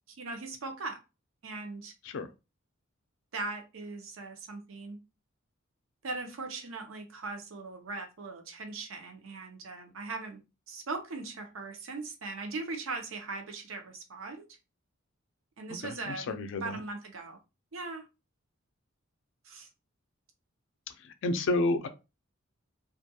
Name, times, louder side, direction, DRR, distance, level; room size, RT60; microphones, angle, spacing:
voice 1, 0.1-1.0 1.4-1.9 3.3-5.0 6.0-10.4 10.7-14.5 15.6-17.4 17.7-18.0 19.4-19.7, right 3 dB, 70° right, 0.6 m, -39 dB
voice 2, 15.8-16.8 21.0-21.9, left 2 dB, 65° left, 0.4 m, -30 dB
2.4 x 2.2 x 2.8 m
head